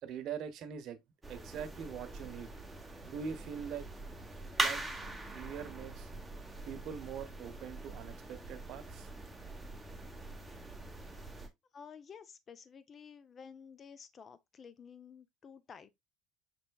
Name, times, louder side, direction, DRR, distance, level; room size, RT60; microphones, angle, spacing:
voice 1, 0.0-1.0 1.3-2.5 3.0-3.9 4.6-4.8 5.2-6.1 6.7-9.1, right 7 dB, 60° right, 0.9 m, -43 dB
sound 1, 1.2-11.5, right 2 dB, 10° right, 1.0 m, -42 dB
voice 2, 11.7-15.9, left 6 dB, 35° left, 0.6 m, -52 dB
6.1 x 3.3 x 2.3 m
supercardioid pair, 100°, 0 cm